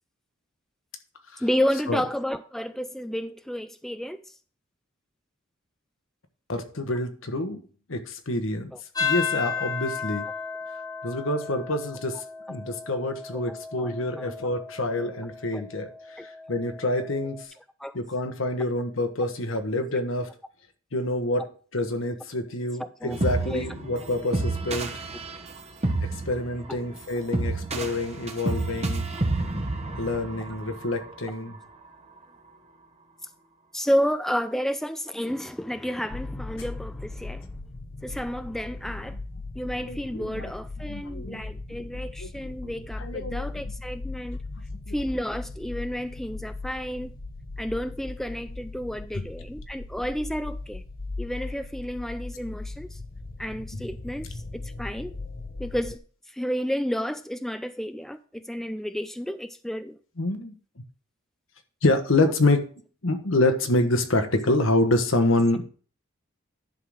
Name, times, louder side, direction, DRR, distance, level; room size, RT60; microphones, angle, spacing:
voice 1, 1.4-4.3 8.7-8.8 12.5-12.6 13.3-13.4 13.8-14.3 15.5-15.6 16.2-16.3 17.8-18.0 22.8-23.2 23.5-23.7 26.7-26.8 33.7-37.5 38.0-39.2 39.6-44.4 44.9-47.1 47.6-50.8 51.2-53.0 53.4-55.1 55.6-56.0 56.3-60.0, equal, ahead, 11 dB, 0.3 m, -31 dB
voice 2, 6.5-7.6 7.9-8.7 9.0-10.3 11.0-12.2 12.5-15.9 16.5-17.4 17.9-20.3 20.9-21.4 21.7-24.9 26.3-29.1 30.0-31.6 39.9-40.5 40.9-41.4 42.2-42.3 43.0-43.4 44.9-45.0 60.2-60.5 61.8-62.6 63.0-65.6, left 2 dB, 70° left, 7 dB, 1.2 m, -26 dB
sound 1, 8.9-17.4, left 6 dB, 20° left, 0.9 m, -34 dB
sound 2, 23.1-31.3, right 2 dB, 35° right, 1.1 m, -30 dB
sound 3, 36.1-56.0, left 3 dB, 45° left, 1.0 m, -38 dB
11.0 x 3.8 x 6.3 m, 0.41 s
head